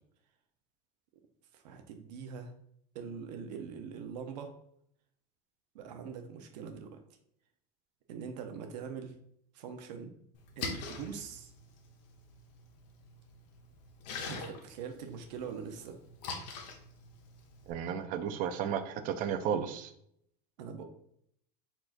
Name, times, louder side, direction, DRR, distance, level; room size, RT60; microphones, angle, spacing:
voice 1, 1.5-2.5 2.9-4.5 5.7-7.0 8.1-9.2 9.5-10.2 10.6-11.5 14.3-16.0 20.6-20.8, right 6 dB, 85° right, 6 dB, 0.8 m, -43 dB
Splash splatter, 10.3-17.7, left 4 dB, 85° left, 1.1 m, -44 dB
voice 2, 17.7-19.9, right 8 dB, 40° right, 10 dB, 0.5 m, -33 dB
4.4 x 4.3 x 2.5 m, 0.71 s
supercardioid pair, 145°, 21 cm